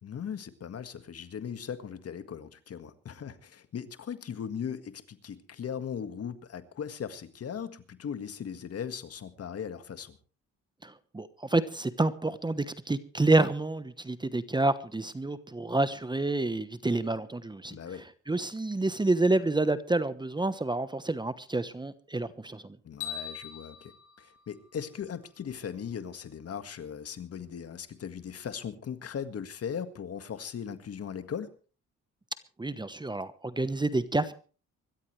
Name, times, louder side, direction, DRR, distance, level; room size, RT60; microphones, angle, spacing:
voice 1, 0.0-10.2 17.7-18.1 22.8-23.9 24.2-31.5, left 7 dB, 50° left, 11 dB, 1.8 m, -38 dB
voice 2, 10.8-17.8 18.3-22.8 32.6-34.3, right 2 dB, 15° right, 13 dB, 1.0 m, -28 dB
sound 1, 23.0-25.3, left 9 dB, 90° left, 5.8 m, -42 dB
25.0 x 13.5 x 3.3 m, 0.37 s
cardioid pair, 90°, 30 cm